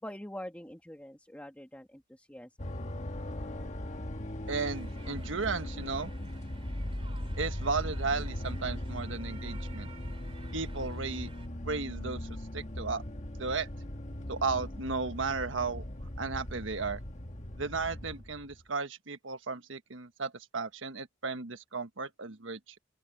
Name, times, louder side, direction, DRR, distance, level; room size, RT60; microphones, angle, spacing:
voice 1, 0.0-2.7, left 1 dB, 10° left, 2.1 m, -45 dB
sound 1, 2.6-18.6, left 1 dB, 40° left, 1.5 m, -39 dB
sound 2, 4.5-11.5, right 5 dB, 30° right, 2.9 m, -55 dB
voice 2, 4.5-6.1 7.4-9.9 10.5-11.3 11.6-12.3 12.5-13.0 13.4-13.7 14.3-17.0 17.6-22.8, right 4 dB, 80° right, 1.4 m, -35 dB
open air
head